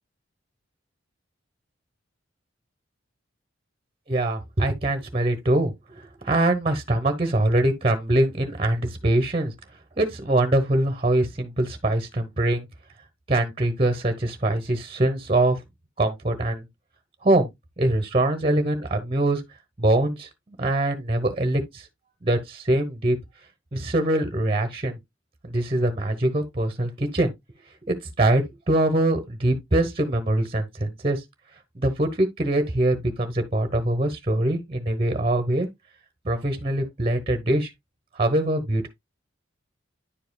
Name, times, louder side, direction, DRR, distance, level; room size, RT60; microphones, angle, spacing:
voice 1, 4.1-5.7 6.2-9.5 10.0-12.7 13.3-15.6 16.0-16.6 17.2-17.5 17.8-19.4 19.8-21.8 22.2-23.2 23.7-25.0 25.4-27.3 27.8-31.2 31.7-35.7 36.2-37.7 38.2-38.9, right 1 dB, 30° right, 1.0 m, -23 dB
10.0 x 4.8 x 2.3 m
head